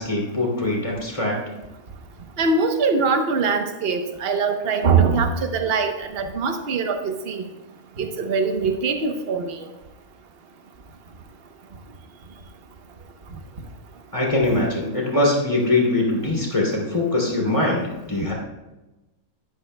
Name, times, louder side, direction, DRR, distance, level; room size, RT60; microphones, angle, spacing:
voice 1, 0.0-1.4 14.1-18.3, left 2 dB, 20° left, -4 dB, 2.9 m, -22 dB
voice 2, 2.4-7.4 8.0-9.5, right 4 dB, 50° right, 5 dB, 1.1 m, -22 dB
12.5 x 12.5 x 2.3 m, 1.1 s
omnidirectional pair, 1.5 m